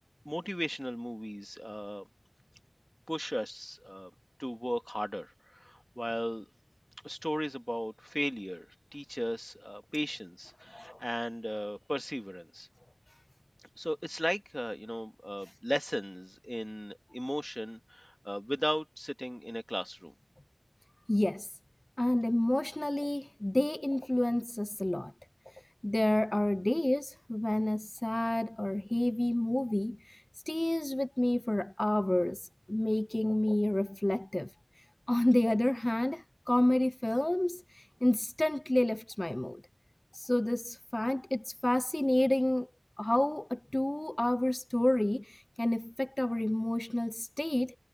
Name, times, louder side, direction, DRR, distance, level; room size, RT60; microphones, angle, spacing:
voice 1, 0.3-2.0 3.1-4.1 4.4-6.5 7.0-8.7 8.9-12.7 13.8-20.1, equal, 5° left, 1.8 m, -36 dB
voice 2, 21.1-21.5 22.0-25.1 25.5-39.6 40.1-42.7 43.0-47.8, left 1 dB, 35° left, 0.3 m, -29 dB
wide cardioid pair, 45°, 0 cm